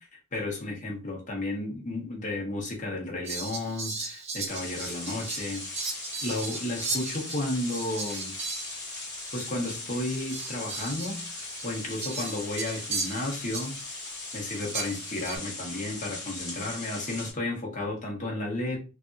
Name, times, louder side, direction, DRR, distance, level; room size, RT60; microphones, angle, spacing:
voice 1, 0.3-5.7 6.2-8.3 9.3-13.8 14.3-18.8, left 2 dB, 40° left, 1.0 m, -33 dB
Fowl, 3.2-9.1 9.3-9.5 10.0-14.0 14.7-15.4, right 3 dB, 30° right, 0.6 m, -37 dB
sound 1, 4.5-17.3, left 2 dB, 15° left, 1.5 m, -39 dB
3.3 x 2.6 x 2.5 m
head